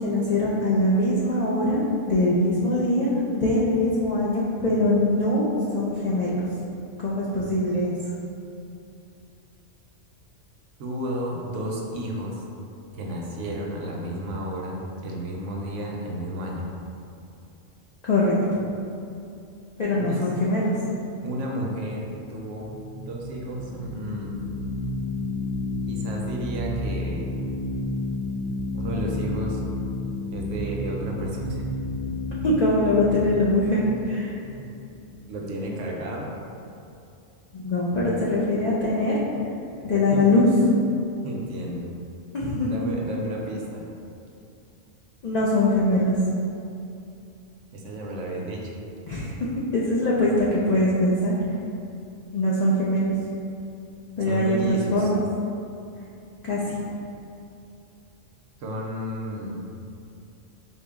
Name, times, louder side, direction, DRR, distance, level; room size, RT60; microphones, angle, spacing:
voice 1, 0.0-5.4 5.7-6.4 7.0-7.9 18.0-18.4 19.8-20.7 32.4-34.3 37.5-39.2 39.8-40.4 42.3-42.8 45.2-46.2 49.1-49.3 49.7-51.3 52.3-53.1 54.2-55.2 56.4-56.8, left 1 dB, 85° left, -6 dB, 0.3 m, -22 dB
voice 2, 10.8-12.4 12.9-16.7 20.0-20.2 21.2-22.7 23.0-24.3 25.9-27.3 28.7-29.6 30.3-31.6 32.0-32.1 35.3-36.3 40.1-40.2 41.2-41.9 42.6-43.8 47.7-48.8 54.3-55.1 58.6-59.6, right 1 dB, 75° right, -2 dB, 0.9 m, -32 dB
sound 1, 22.3-35.4, left 2 dB, 50° left, 1.2 m, -31 dB
4.3 x 2.0 x 3.5 m, 2.6 s
omnidirectional pair, 1.3 m